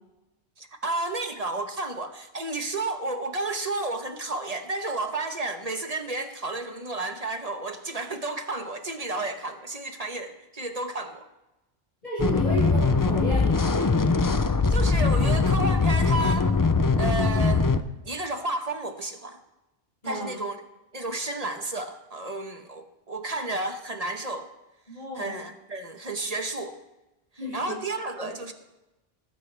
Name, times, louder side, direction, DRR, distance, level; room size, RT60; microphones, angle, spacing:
voice 1, 0.6-11.2 14.7-16.5 17.0-17.7 18.0-19.4 20.0-20.6 20.9-24.5 25.1-26.7 27.5-28.5, right 2 dB, 40° right, 6 dB, 1.3 m, -32 dB
voice 2, 12.0-13.7 20.0-20.3 24.9-25.4 27.4-27.7 28.2-28.3, equal, 45° left, -9 dB, 5.9 m, -32 dB
sound 1, 12.2-17.8, left 4 dB, 25° left, 0.4 m, -22 dB
19.5 x 14.0 x 3.4 m, 0.99 s
omnidirectional pair, 1.1 m